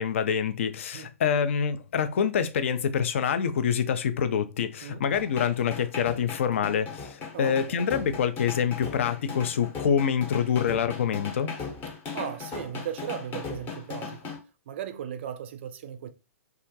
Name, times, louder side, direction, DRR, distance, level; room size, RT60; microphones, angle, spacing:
voice 1, 0.0-11.5, left 7 dB, 50° left, 0.3 m, -26 dB
sound 1, 5.1-14.4, left 5 dB, 20° left, 0.7 m, -38 dB
voice 2, 7.3-7.8 12.1-14.3 14.7-16.1, right 9 dB, 45° right, 0.4 m, -37 dB
2.3 x 2.1 x 2.7 m
figure-of-eight pair, 115°, 8 cm